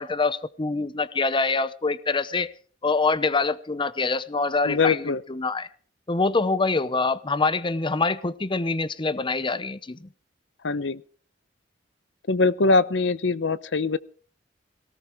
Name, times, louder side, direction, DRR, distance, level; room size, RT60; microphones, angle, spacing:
voice 1, 0.0-2.5 2.8-5.7 6.1-10.0, left 3 dB, 25° left, 0.7 m, -25 dB
voice 2, 4.7-5.2 10.6-11.0 12.3-14.0, left 3 dB, 70° left, 0.8 m, -22 dB
18.0 x 17.5 x 3.5 m
head